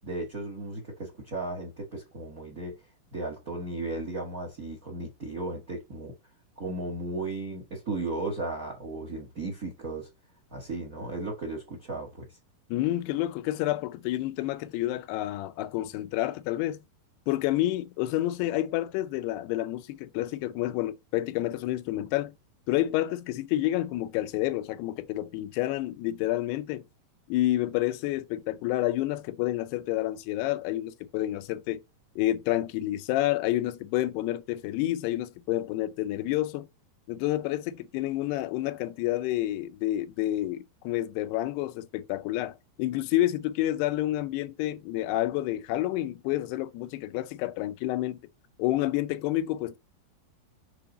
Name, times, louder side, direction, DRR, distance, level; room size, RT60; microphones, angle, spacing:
voice 1, 0.0-2.8 3.1-6.1 6.6-10.1 10.5-12.3, right 2 dB, 55° right, 0.9 m, -35 dB
voice 2, 12.7-16.8 17.3-22.4 22.7-26.8 27.3-31.8 32.2-36.7 37.1-48.2 48.6-49.8, left 15 dB, 90° left, 2.7 m, -29 dB
7.8 x 3.4 x 4.0 m
omnidirectional pair, 4.6 m